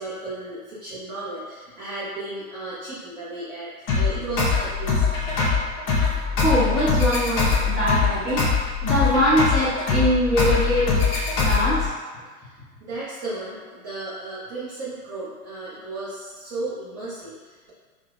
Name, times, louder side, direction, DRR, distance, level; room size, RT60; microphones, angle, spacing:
voice 1, 0.0-5.2 12.4-17.7, right 2 dB, 20° right, -10 dB, 0.5 m, -34 dB
sound 1, 3.9-11.9, left 5 dB, 30° left, 0.9 m, -22 dB
voice 2, 6.4-8.4 8.8-10.9 11.4-11.9, equal, ahead, -12 dB, 0.9 m, -22 dB
4.7 x 2.1 x 2.3 m, 1.4 s
hypercardioid pair, 120°, 46 cm